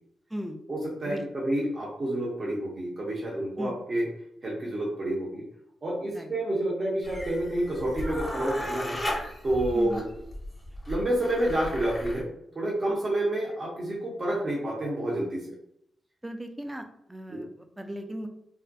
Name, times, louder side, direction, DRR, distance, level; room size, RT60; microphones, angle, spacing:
voice 1, 0.7-4.1 4.4-5.4 5.8-9.0 9.4-10.0 10.9-12.3 12.5-15.5 17.3-17.4, right 1 dB, 45° right, -5 dB, 0.7 m, -29 dB
sound 1, 7.0-12.2, left 1 dB, 20° left, 0.7 m, -36 dB
voice 2, 9.7-10.0 16.2-18.3, equal, 10° right, 5 dB, 0.4 m, -37 dB
2.4 x 2.1 x 2.6 m, 0.72 s
cardioid pair, 60°, 0 cm